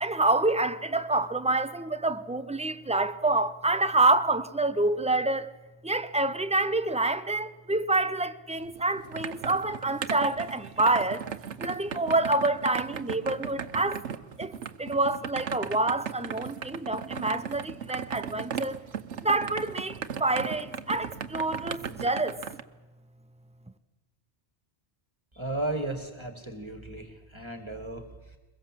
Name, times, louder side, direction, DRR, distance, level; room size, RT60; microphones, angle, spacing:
voice 1, 0.0-5.5 5.8-11.3 11.6-14.0 14.4-18.8 19.2-22.4, right 2 dB, 5° right, 0.6 m, -27 dB
sound 1, 8.6-22.6, right 8 dB, 85° right, 1.2 m, -37 dB
voice 2, 25.3-28.4, right 2 dB, 25° right, 2.1 m, -35 dB
22.5 x 21.5 x 7.6 m
omnidirectional pair, 1.2 m